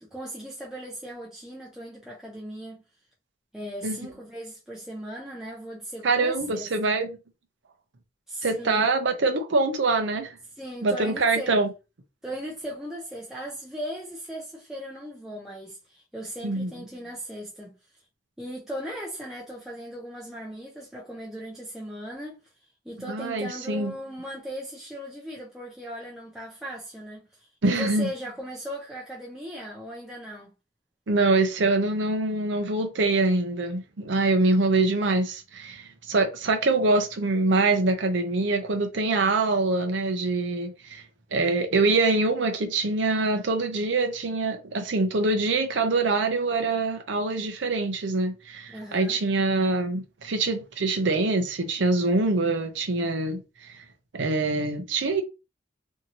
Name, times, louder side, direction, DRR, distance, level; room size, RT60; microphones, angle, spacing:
voice 1, 0.0-2.8 3.5-6.9 8.3-8.9 10.6-11.5 12.2-17.8 18.4-22.4 22.8-30.5 48.7-49.2, equal, 5° right, 0.5 m, -38 dB
voice 2, 6.0-7.2 8.4-10.4 10.8-11.7 16.4-16.7 23.1-23.9 27.6-28.1 31.1-41.0 41.3-53.8 54.1-55.2, right 3 dB, 80° right, 0.6 m, -24 dB
2.8 x 2.7 x 2.7 m
head